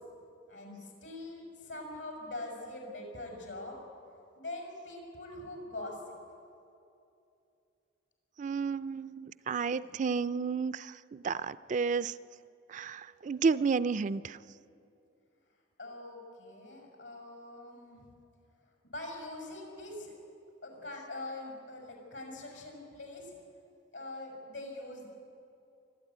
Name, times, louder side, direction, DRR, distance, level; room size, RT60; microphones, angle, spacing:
voice 1, 0.5-3.8 4.3-6.0 15.8-18.1 18.8-20.1 20.6-23.3 23.9-25.1, left 2 dB, 80° left, 0 dB, 6.3 m, -43 dB
voice 2, 8.4-12.1 12.7-14.4, right 5 dB, 40° right, 14 dB, 0.4 m, -31 dB
24.0 x 13.0 x 9.3 m, 2.6 s
head